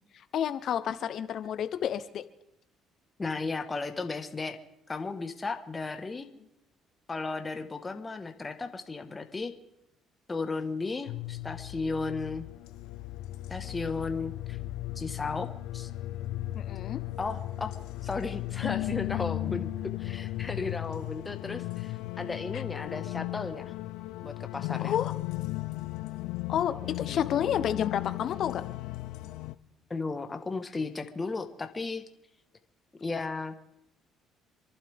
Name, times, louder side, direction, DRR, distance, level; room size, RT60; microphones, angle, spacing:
voice 1, 0.0-2.2 16.5-17.0 22.5-22.6 24.8-25.1 26.5-28.6, left 9 dB, 60° left, 11 dB, 0.9 m, -30 dB
voice 2, 3.2-4.6 4.9-6.3 7.1-9.5 10.3-12.4 13.5-14.6 14.9-15.9 17.2-17.7 18.0-19.7 20.0-23.7 24.2-24.9 26.8-27.2 29.9-32.0 33.0-33.6, left 3 dB, 25° left, 6 dB, 1.5 m, -35 dB
sound 1, 11.1-29.5, left 17 dB, 85° left, 0.6 m, -36 dB
27.5 x 11.5 x 3.6 m, 0.83 s
cardioid pair, 85°, 0 cm